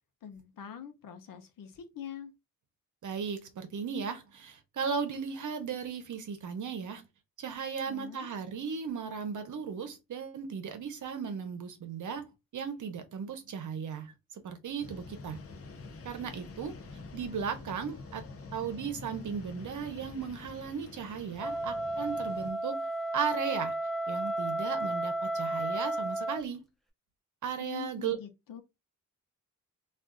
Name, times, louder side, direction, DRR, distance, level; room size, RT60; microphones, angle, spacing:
voice 1, 0.2-2.3 7.8-8.3 27.6-28.6, left 9 dB, 90° left, 0.7 m, -44 dB
voice 2, 3.0-7.0 7.4-14.1 14.4-15.4 16.0-16.8 17.1-18.2 18.5-22.9 23.1-23.7 24.1-26.7 27.4-28.2, right 6 dB, 65° right, 0.7 m, -36 dB
sound 1, 14.8-22.5, left 3 dB, 45° left, 0.6 m, -47 dB
Wind instrument woodwind instrument, 21.4-26.4, right 1 dB, ahead, 0.5 m, -33 dB
2.4 x 2.3 x 3.6 m
wide cardioid pair, 115°, 32 cm